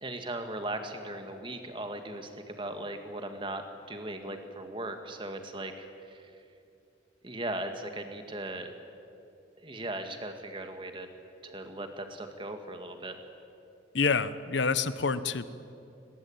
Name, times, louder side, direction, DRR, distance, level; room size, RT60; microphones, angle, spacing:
voice 1, 0.0-3.6 3.9-6.2 7.2-8.7 9.6-11.1 11.4-13.2, right 1 dB, 25° right, 6 dB, 1.9 m, -38 dB
voice 2, 13.9-15.4, left 5 dB, 70° left, 14 dB, 0.9 m, -27 dB
22.5 x 21.0 x 8.8 m, 2.7 s
head